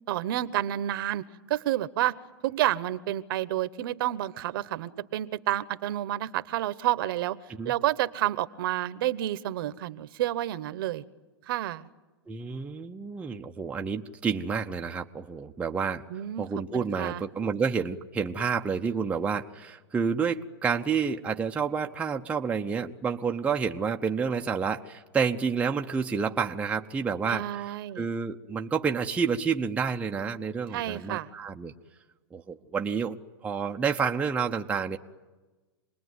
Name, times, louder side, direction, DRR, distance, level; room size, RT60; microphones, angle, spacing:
voice 1, 0.1-2.2 2.4-7.4 7.6-11.0 11.5-11.9 16.1-16.5 16.7-17.2 27.3-28.1 30.7-31.3, right 14 dB, 55° right, 15 dB, 1.1 m, -29 dB
voice 2, 12.3-16.0 16.4-31.7 32.3-33.2 33.4-35.0, right 6 dB, 10° right, 3 dB, 0.8 m, -29 dB
27.0 x 20.5 x 9.6 m, 1.2 s
hypercardioid pair, 150°, 14 cm